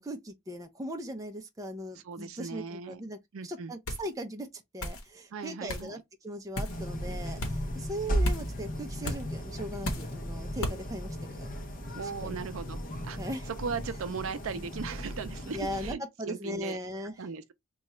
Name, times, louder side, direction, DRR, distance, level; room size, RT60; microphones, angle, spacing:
voice 1, 0.0-3.2 3.4-11.5 12.2-12.4 13.2-13.5 14.5-14.6 15.5-17.2, equal, 15° right, 0.5 m, -39 dB
voice 2, 2.0-3.0 3.3-3.7 5.3-6.0 11.9-12.8 13.0-16.8 17.2-17.5, right 5 dB, 70° right, 0.5 m, -38 dB
sound 1, 3.9-4.1 4.8-5.0 5.7-5.9 6.5-6.8 7.4-7.6 8.2-8.5 9.0-9.2 9.8-10.1 10.6-10.8, left 1 dB, 75° left, 0.9 m, -34 dB
sound 2, 6.7-15.9, equal, 40° left, 0.7 m, -36 dB
2.9 x 2.3 x 4.2 m
head